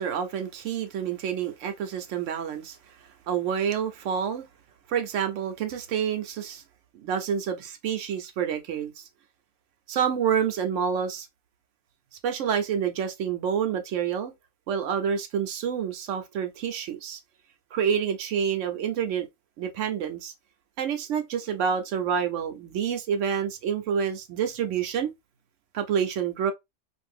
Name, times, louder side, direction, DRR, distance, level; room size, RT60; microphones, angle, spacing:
voice 1, 0.0-2.8 3.3-4.4 4.9-6.6 7.0-9.1 9.9-11.3 12.2-14.3 14.7-17.2 17.7-19.3 19.6-20.3 20.8-25.1 25.7-26.5, right 8 dB, 70° right, 0.9 m, -28 dB
2.6 x 2.6 x 3.2 m
omnidirectional pair, 1.4 m